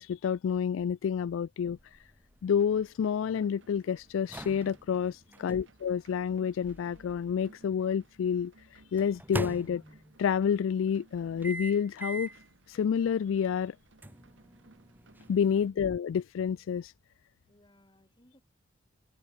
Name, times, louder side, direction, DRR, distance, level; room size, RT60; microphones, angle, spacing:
voice 1, 0.0-1.8 2.4-9.8 10.2-12.3 12.7-13.8 15.3-16.9, left 7 dB, 75° left, 0.3 m, -29 dB
sound 1, 1.8-7.9 9.0-10.3 11.4-12.5 12.9-13.1 14.0-15.7, right 1 dB, 10° right, 1.4 m, -42 dB
sound 2, 2.6-15.7, right 2 dB, 65° right, 1.6 m, -62 dB
voice 2, 5.3-5.7 17.5-18.4, equal, 25° left, 7.9 m, -63 dB
head